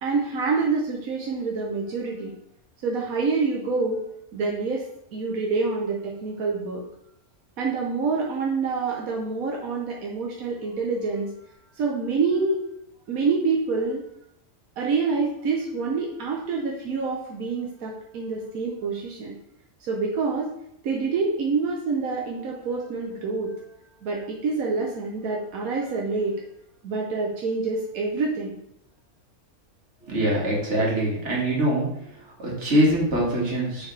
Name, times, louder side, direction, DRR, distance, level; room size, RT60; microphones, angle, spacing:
voice 1, 0.0-2.3 2.8-4.0 4.3-6.8 7.6-11.3 11.8-12.6 13.1-14.0 14.8-19.3 19.8-20.5 20.8-23.5 24.0-26.3 26.8-28.6, right 4 dB, 85° right, -1 dB, 1.3 m, -27 dB
voice 2, 30.0-31.9 32.2-33.9, right 1 dB, 55° right, -4 dB, 2.2 m, -23 dB
6.6 x 4.9 x 3.2 m, 0.76 s
omnidirectional pair, 1.4 m